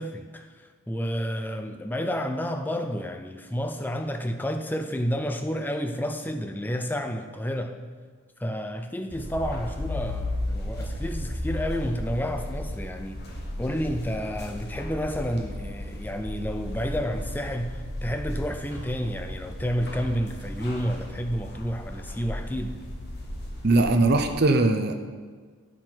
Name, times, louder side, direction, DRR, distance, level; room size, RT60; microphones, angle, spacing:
voice 1, 0.0-7.8 8.4-13.2 13.6-22.8, equal, 10° left, 0.4 m, -30 dB
sound 1, 9.1-24.3, left 1 dB, 50° left, 1.2 m, -35 dB
voice 2, 23.6-24.9, right 2 dB, 45° right, 0.6 m, -20 dB
9.4 x 6.1 x 4.5 m
head